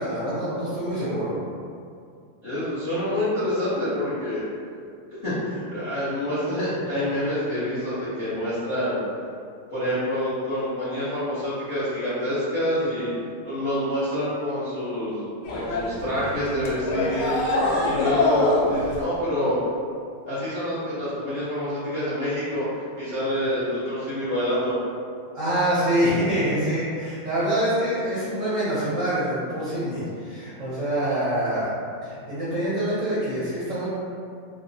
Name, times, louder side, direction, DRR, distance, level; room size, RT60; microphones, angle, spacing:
voice 1, 0.0-1.3 25.3-33.9, right 1 dB, 70° right, -12 dB, 0.7 m, -25 dB
voice 2, 2.4-4.4 5.2-9.0 9.7-13.1 13.4-17.4 17.8-19.5 20.3-22.6 23.0-24.7, left 1 dB, 60° left, -15 dB, 0.6 m, -27 dB
sound 1, 15.4-19.0, left 2 dB, 90° left, 1.5 m, -24 dB
3.6 x 2.0 x 2.6 m, 2.3 s
omnidirectional pair, 2.3 m